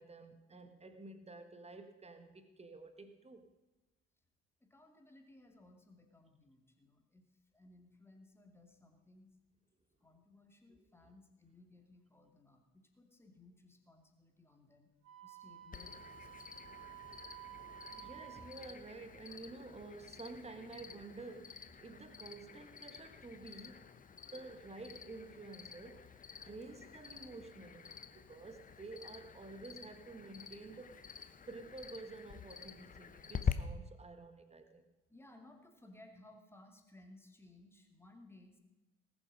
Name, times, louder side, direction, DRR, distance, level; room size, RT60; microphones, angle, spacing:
voice 1, 0.0-3.5 10.8-10.9 17.9-23.8 24.3-26.2 26.4-27.9 28.1-31.0 31.5-34.8, right 3 dB, 20° right, 9 dB, 1.5 m, -51 dB
voice 2, 4.6-9.3 10.0-14.9 15.2-16.7 35.1-38.6, left 2 dB, 5° left, 3 dB, 2.4 m, -61 dB
Wind instrument woodwind instrument, 15.0-18.6, right 11 dB, 60° right, 2.8 m, -52 dB
Cricket, 15.7-33.5, left 7 dB, 25° left, 0.9 m, -47 dB
19.5 x 7.2 x 5.3 m, 1.1 s
figure-of-eight pair, 50°, 34 cm